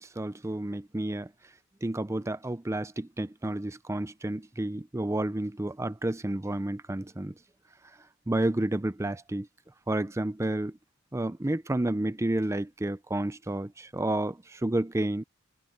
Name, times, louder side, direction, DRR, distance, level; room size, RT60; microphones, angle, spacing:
voice 1, 0.0-1.3 1.8-7.3 8.3-9.5 9.9-10.8 11.1-15.2, right 1 dB, 15° right, 0.5 m, -30 dB
head